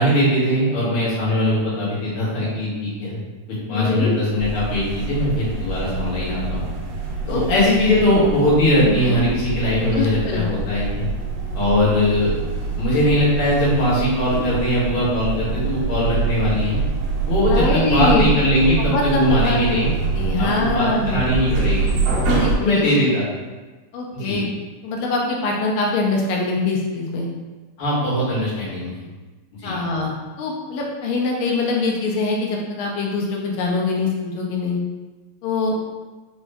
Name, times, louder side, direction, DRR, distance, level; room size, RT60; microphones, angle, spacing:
voice 1, 0.0-3.2 3.7-6.6 7.3-11.0 11.5-12.3 12.8-16.8 17.3-19.9 20.4-21.9 22.6-23.2 24.1-24.4 27.8-29.0 29.6-29.8, left 1 dB, 50° left, -8 dB, 1.9 m, -20 dB
voice 2, 3.7-4.1 7.3-7.6 8.8-9.2 9.9-10.4 17.5-18.3 18.8-19.8 20.1-21.2 22.2-22.8 23.9-24.5 24.8-27.3 29.6-30.1 30.4-34.8 35.4-35.9, left 3 dB, 75° left, -1 dB, 1.8 m, -23 dB
sound 1, 4.4-22.6, right 4 dB, 70° right, 1.8 m, -25 dB
5.2 x 2.4 x 3.3 m, 1.3 s
omnidirectional pair, 3.6 m